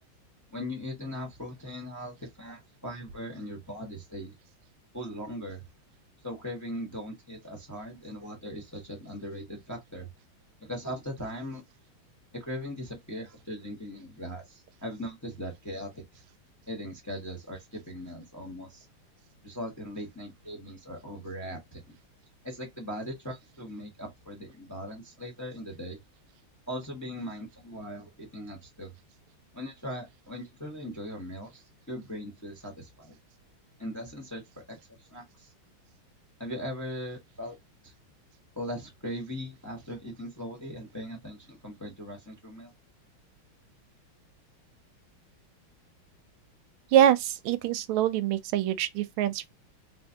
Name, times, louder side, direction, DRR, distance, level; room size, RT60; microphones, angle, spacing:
voice 1, 0.5-4.3 4.9-5.6 6.2-10.1 10.6-11.6 12.3-16.2 16.7-18.9 19.4-21.8 22.4-26.0 26.7-28.9 29.5-33.1 33.8-34.4 34.7-35.5 36.4-37.6 37.8-37.9 38.6-42.7, equal, 15° left, 0.7 m, -39 dB
voice 2, 46.9-49.5, right 11 dB, 85° right, 1.4 m, -24 dB
3.7 x 2.5 x 2.6 m
omnidirectional pair, 2.3 m